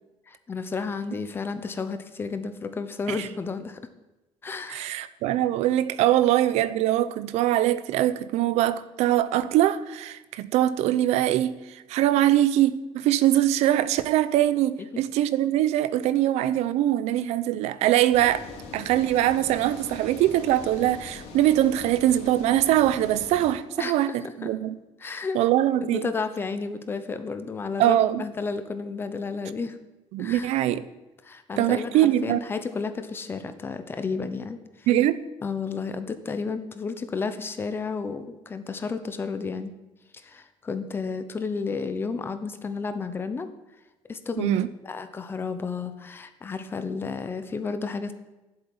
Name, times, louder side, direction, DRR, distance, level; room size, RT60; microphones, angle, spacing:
voice 1, 0.3-3.8 4.4-4.9 14.8-14.9 23.8-24.5 25.0-25.4 25.8-29.8 30.2-30.5 31.2-34.9 35.4-39.7 40.2-43.5 44.1-44.6 44.8-48.1, left 4 dB, 20° left, 0.9 m, -32 dB
voice 2, 4.7-18.4 18.7-24.8 25.3-26.1 27.8-28.2 30.1-30.8 31.6-32.4 34.9-35.2 44.4-44.7, right 13 dB, 80° right, 0.8 m, -22 dB
sound 1, 18.1-23.5, left 4 dB, 75° left, 3.2 m, -42 dB
11.0 x 7.9 x 9.6 m
cardioid pair, 180°, 11 cm